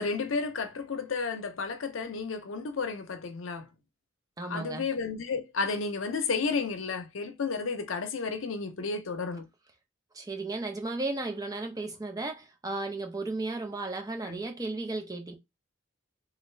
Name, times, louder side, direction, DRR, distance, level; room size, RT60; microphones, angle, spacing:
voice 1, 0.0-3.6 4.4-9.4 14.3-14.4, left 4 dB, 85° left, 0.6 m, -32 dB
voice 2, 4.4-4.9 10.1-15.4, right 2 dB, 20° right, 0.5 m, -34 dB
3.3 x 2.5 x 3.2 m
head